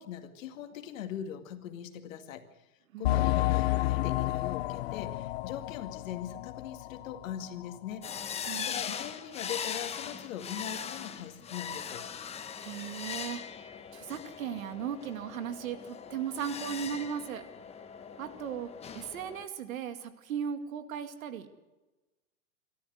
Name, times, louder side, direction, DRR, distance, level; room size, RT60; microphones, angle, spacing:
voice 1, 0.0-2.5 3.0-8.0 8.6-12.0, left 10 dB, 60° left, 7 dB, 2.3 m, -41 dB
voice 2, 2.9-3.2 8.4-8.8 12.6-13.4 13.9-17.5 18.2-21.5, right 8 dB, 65° right, 9 dB, 2.3 m, -37 dB
sound 1, 3.0-7.3 7.6-7.7 8.3-8.4, left 16 dB, 45° left, 0.6 m, -30 dB
sound 2, 8.0-19.4, left 7 dB, 15° left, 1.0 m, -40 dB
24.5 x 13.5 x 8.0 m, 1.1 s
hypercardioid pair, 135°, 43 cm